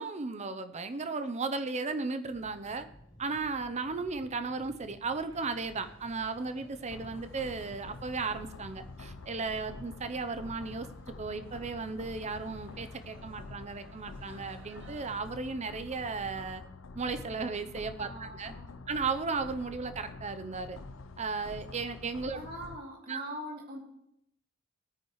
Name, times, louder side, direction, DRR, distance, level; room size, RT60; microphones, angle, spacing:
voice 1, 0.0-2.9 3.2-10.9 11.2-16.6 16.9-18.5 18.9-20.8 21.2-22.4 23.1-23.2, right 4 dB, 35° right, 10 dB, 0.7 m, -35 dB
sound 1, 2.3-14.2, equal, 60° left, 2.7 m, -56 dB
sound 2, 4.9-15.2, right 2 dB, 65° right, 1.8 m, -60 dB
sound 3, 6.9-22.8, left 3 dB, 80° left, 0.7 m, -47 dB
voice 2, 18.0-18.7 22.3-23.8, equal, 50° right, -1 dB, 2.9 m, -42 dB
18.5 x 9.3 x 3.2 m, 0.78 s
head